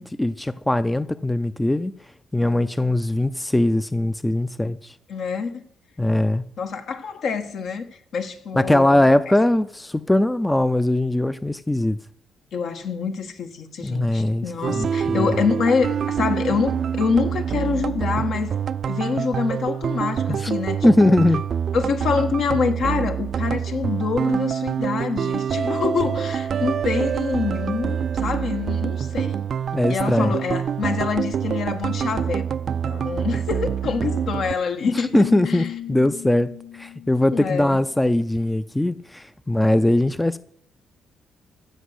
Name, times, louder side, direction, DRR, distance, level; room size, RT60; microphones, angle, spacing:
voice 1, 0.0-1.9 2.3-4.9 6.0-6.4 8.5-12.0 13.8-15.3 20.3-20.5 20.8-21.4 29.7-30.4 35.1-40.4, left 1 dB, 10° left, 0.4 m, -20 dB
voice 2, 5.1-5.6 6.6-9.4 12.5-18.6 18.9-21.3 21.7-29.4 29.9-32.5 32.8-35.7 37.3-37.8, left 5 dB, 65° left, 1.3 m, -26 dB
sound 1, 14.6-34.5, right 8 dB, 55° right, 0.4 m, -26 dB
sound 2, 33.7-34.7 35.0-38.0, left 11 dB, 85° left, 0.5 m, -36 dB
14.5 x 5.2 x 8.0 m
cardioid pair, 90°, 0 cm